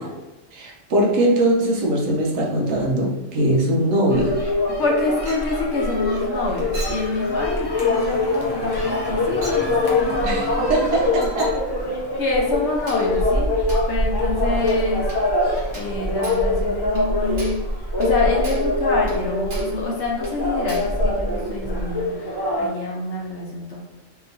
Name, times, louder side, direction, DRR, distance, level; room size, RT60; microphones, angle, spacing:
voice 1, 0.5-4.3 10.2-11.5, right 1 dB, 80° right, -1 dB, 1.1 m, -21 dB
sound 1, 4.1-22.7, left 2 dB, 30° left, 0.4 m, -23 dB
voice 2, 4.8-11.3 12.2-13.5 13.9-15.1 15.7-17.6 18.0-23.8, left 3 dB, 65° left, -2 dB, 0.9 m, -27 dB
Chink clink, 5.3-5.6 6.7-7.1 8.1-8.3 9.4-9.7 11.2-11.6 12.9-13.1 13.7-13.9 14.7-14.8 15.1-15.3 15.7-16.0 16.2-16.5 17.0-17.1 17.4-17.7 18.0-18.1 18.4-18.7 19.1-19.2 19.5-19.8 20.2-20.4 20.7-21.0, right 1 dB, 45° right, 1.1 m, -38 dB
sound 2, 8.7-14.6, left 3 dB, 90° left, 1.2 m, -40 dB
2.9 x 2.8 x 2.6 m, 1.0 s
omnidirectional pair, 1.4 m